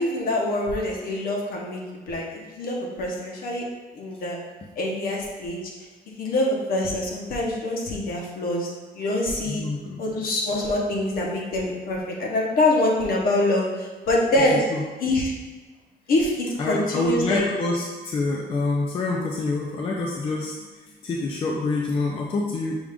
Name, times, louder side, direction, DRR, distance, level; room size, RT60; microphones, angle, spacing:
voice 1, 0.0-3.6 3.9-4.4 4.8-5.6 6.2-9.6 10.0-14.6 15.0-15.3 16.1-17.4, left 1 dB, 65° left, -2 dB, 1.0 m, -25 dB
voice 2, 9.5-10.0 14.7-14.8 16.6-20.5 21.0-22.8, left 3 dB, 35° left, -2 dB, 0.5 m, -26 dB
6.1 x 2.5 x 3.5 m, 1.3 s
cardioid pair, 155°, 17 cm